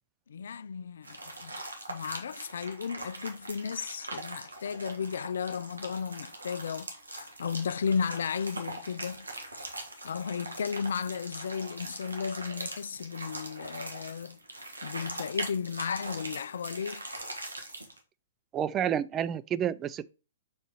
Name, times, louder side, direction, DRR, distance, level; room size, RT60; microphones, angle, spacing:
voice 1, 0.3-1.6 1.9-9.3 10.0-14.4 14.8-17.0, left 6 dB, 65° left, 0.4 m, -34 dB
sound 1, 1.0-18.0, right 2 dB, 85° right, 1.4 m, -42 dB
voice 2, 18.5-20.1, right 9 dB, 20° right, 0.3 m, -30 dB
4.9 x 4.0 x 5.2 m
figure-of-eight pair, 120°, 0 cm